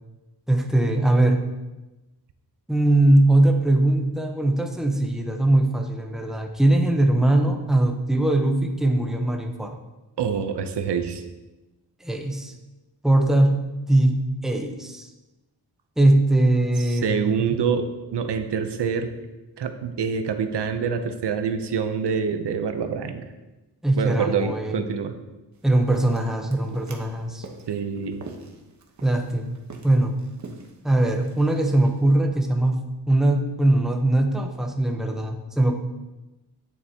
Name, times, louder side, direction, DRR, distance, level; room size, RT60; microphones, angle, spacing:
voice 1, 0.5-1.5 2.7-9.8 12.0-12.5 13.0-15.1 16.0-17.6 23.8-24.8 25.6-27.5 29.0-29.6 29.8-30.2 30.8-35.8, right 1 dB, ahead, 3 dB, 0.8 m, -21 dB
voice 2, 10.2-11.2 16.8-19.1 19.6-23.3 24.0-25.1 27.7-28.2, right 6 dB, 80° right, 8 dB, 0.8 m, -26 dB
sound 1, 25.5-32.1, right 3 dB, 45° right, 1.1 m, -45 dB
9.4 x 7.9 x 2.9 m, 1.1 s
wide cardioid pair, 100°, 41 cm